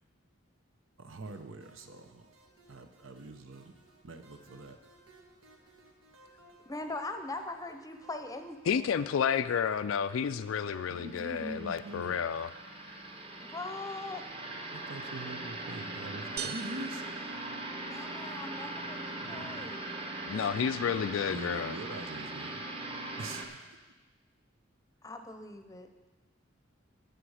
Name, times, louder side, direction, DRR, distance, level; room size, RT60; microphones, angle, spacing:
voice 1, 1.0-2.3 2.7-3.7 4.0-4.8 10.9-12.4 14.7-17.0 19.2-19.7 21.3-22.6 23.2-23.7, right 2 dB, 75° right, 7 dB, 0.8 m, -44 dB
sound 1, 1.1-11.7, right 1 dB, 90° right, 1.6 m, -60 dB
voice 2, 6.7-9.0 13.4-14.2 17.8-19.9 25.0-25.9, left 2 dB, 15° left, 7 dB, 0.7 m, -41 dB
voice 3, 8.7-12.5 20.2-21.8, left 7 dB, 75° left, 11 dB, 0.4 m, -31 dB
sound 2, 9.9-23.5, right 2 dB, 25° right, 1.0 m, -41 dB
sound 3, 16.4-18.2, right 8 dB, 50° right, 0.3 m, -43 dB
11.5 x 7.8 x 4.9 m, 1.2 s
head